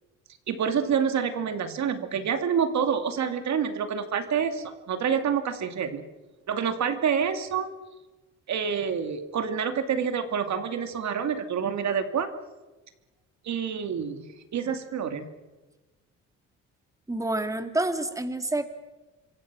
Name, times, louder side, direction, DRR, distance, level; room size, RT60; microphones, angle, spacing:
voice 1, 0.5-6.0 6.5-7.7 8.5-12.3 13.4-14.2 14.5-15.3, right 7 dB, 65° right, 8 dB, 2.5 m, -27 dB
voice 2, 17.1-18.7, right 2 dB, 10° right, 8 dB, 2.1 m, -28 dB
27.5 x 24.5 x 6.2 m, 1.1 s
cardioid pair, 90°, 30 cm